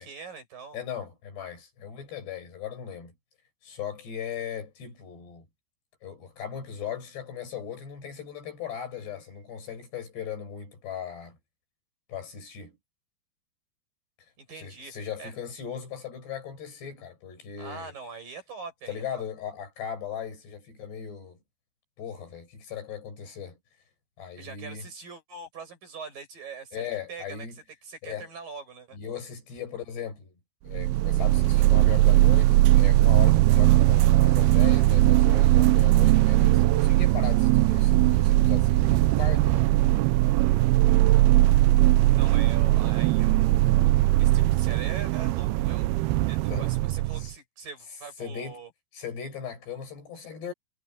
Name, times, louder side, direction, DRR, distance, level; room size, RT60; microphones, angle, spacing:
voice 1, 0.0-0.8 14.4-14.9 15.2-15.3 17.6-19.2 24.4-27.5 27.8-29.0 42.1-45.9 46.2-48.7, right 5 dB, 55° right, 9.3 m, -42 dB
voice 2, 0.7-3.2 3.6-5.5 6.0-11.4 12.1-12.8 14.6-17.9 18.9-21.4 22.0-23.6 24.2-24.9 26.7-27.6 28.0-28.3 28.9-30.4 30.6-39.7 46.5-46.7 47.1-47.3 48.2-48.6 48.9-50.5, left 8 dB, 85° left, 8.7 m, -38 dB
sound 1, 30.7-47.3, right 17 dB, 85° right, 2.5 m, -20 dB
omnidirectional pair, 4.7 m